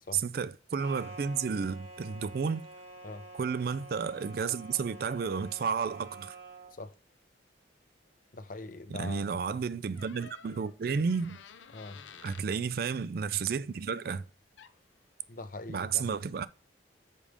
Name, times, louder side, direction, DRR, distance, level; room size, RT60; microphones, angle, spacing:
voice 1, 0.1-2.6 3.3-6.4 8.9-11.4 12.2-14.2 15.7-16.5, right 6 dB, 50° right, 0.3 m, -32 dB
sound 1, 0.8-6.8, right 2 dB, 85° right, 2.4 m, -48 dB
voice 2, 8.3-9.3 11.7-12.0 15.3-16.1, left 2 dB, 45° left, 0.6 m, -42 dB
Door, 9.9-12.5 14.3-14.4 14.6-14.9, left 6 dB, 85° left, 0.6 m, -52 dB
5.2 x 5.0 x 4.9 m
head